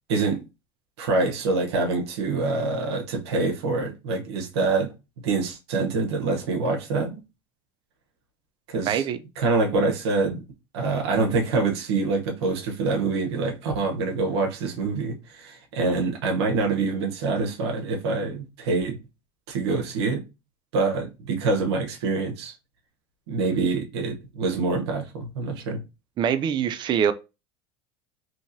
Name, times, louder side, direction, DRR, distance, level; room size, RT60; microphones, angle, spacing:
voice 1, 0.1-0.4 1.0-4.9 5.2-7.2 8.7-9.1 9.4-10.4 10.7-19.0 19.5-20.2 20.7-22.5 23.3-25.8, right 3 dB, 85° right, 0.8 m, -25 dB
voice 2, 8.9-9.2 26.2-27.1, right 8 dB, 35° right, 0.3 m, -23 dB
2.8 x 2.8 x 2.6 m
supercardioid pair, 100°, 13 cm